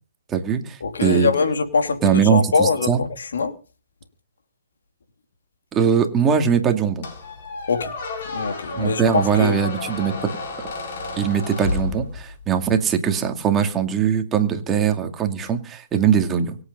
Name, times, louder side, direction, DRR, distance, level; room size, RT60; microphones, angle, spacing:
voice 1, 0.3-1.3 2.0-3.0 5.7-7.0 8.8-10.3 11.2-16.6, right 7 dB, 15° right, 2.4 m, -21 dB
voice 2, 0.8-3.6 7.7-7.9 8.2-9.6, left 4 dB, 75° left, 2.8 m, -23 dB
Squeak, 7.0-12.5, left 3 dB, 45° left, 6.6 m, -31 dB
24.5 x 8.7 x 5.4 m
hypercardioid pair, 155°, 0 cm